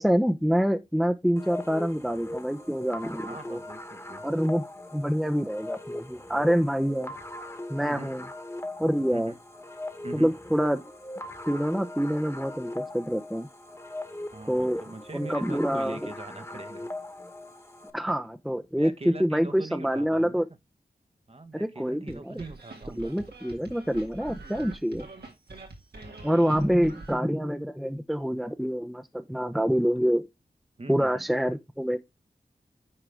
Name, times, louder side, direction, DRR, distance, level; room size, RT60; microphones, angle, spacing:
voice 1, 0.0-3.6 4.2-4.6 4.9-7.1 7.7-8.2 8.8-9.3 10.1-10.8 11.5-13.5 14.5-14.8 15.1-16.0 17.9-20.4 21.5-22.3 23.0-25.1 26.2-30.2 30.9-32.0, equal, ahead, 0.7 m, -26 dB
sound 1, 1.4-17.9, left 1 dB, 15° left, 1.4 m, -40 dB
voice 2, 3.3-4.2 6.3-6.4 7.8-8.1 9.1-9.3 10.0-10.3 14.3-16.9 18.8-20.4 21.3-23.2 26.6-26.7 30.8-31.2, right 2 dB, 40° right, 1.1 m, -42 dB
sound 2, 22.1-27.1, right 3 dB, 80° right, 2.1 m, -44 dB
9.9 x 4.8 x 3.4 m
cardioid pair, 50°, 16 cm